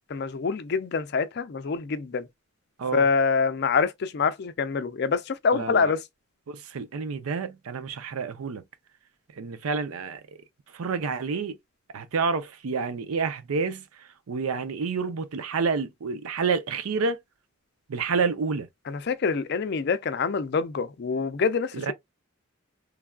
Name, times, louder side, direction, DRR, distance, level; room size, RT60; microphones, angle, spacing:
voice 1, 0.1-2.2 2.9-6.0 18.9-21.9, left 5 dB, 50° left, 0.4 m, -25 dB
voice 2, 5.5-5.9 6.5-8.6 9.4-10.2 10.7-11.6 11.9-17.2 17.9-18.7 21.7-21.9, right 5 dB, 90° right, 0.5 m, -29 dB
3.3 x 2.3 x 2.3 m
head